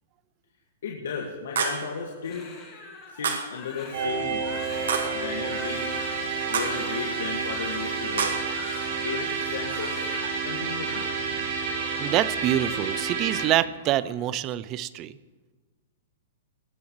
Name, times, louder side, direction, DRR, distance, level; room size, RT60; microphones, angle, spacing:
voice 1, 0.8-2.5 3.1-4.5 5.1-5.9 6.5-8.3 9.0-9.9 10.4-11.1, left 6 dB, 80° left, -1 dB, 2.0 m, -34 dB
sound 1, 1.6-2.0 3.2-3.6 4.9-5.3 6.5-6.9 8.2-8.6, right 5 dB, 85° right, 1.7 m, -28 dB
Crying sobbing, 2.2-9.2 9.5-10.3 10.6-11.1 11.6-12.9 13.2-13.5 13.8-14.3, left 4 dB, 20° left, 2.1 m, -44 dB
sound 2, 3.9-13.5, right 5 dB, 50° right, 3.4 m, -30 dB
voice 2, 12.0-15.1, right 13 dB, 25° right, 18 dB, 0.3 m, -26 dB
19.5 x 14.5 x 3.2 m, 1.4 s
hypercardioid pair, 170°, 0 cm